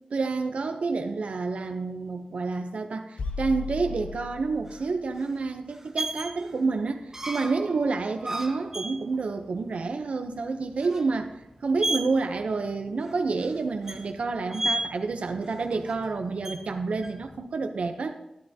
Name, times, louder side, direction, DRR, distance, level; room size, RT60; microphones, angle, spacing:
voice 1, 0.0-18.1, right 4 dB, 85° right, 6 dB, 0.6 m, -29 dB
sound 1, 3.2-5.0, left 4 dB, 85° left, 0.7 m, -36 dB
sound 2, 3.9-17.3, right 1 dB, 20° right, 1.0 m, -36 dB
12.5 x 12.0 x 2.8 m, 0.86 s
wide cardioid pair, 95°, 2 cm